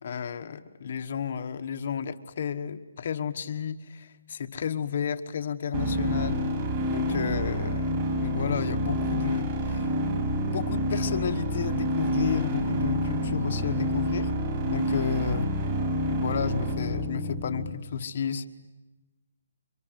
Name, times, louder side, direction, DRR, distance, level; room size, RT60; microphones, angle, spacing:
voice 1, 0.0-6.5 6.9-9.9 10.5-14.3 14.7-15.5 16.1-18.5, left 7 dB, 40° left, 8 dB, 1.2 m, -32 dB
sound 1, 5.7-17.7, equal, 25° right, 4.0 m, -28 dB
29.5 x 24.5 x 8.1 m, 1.1 s
hypercardioid pair, 175°, 0 cm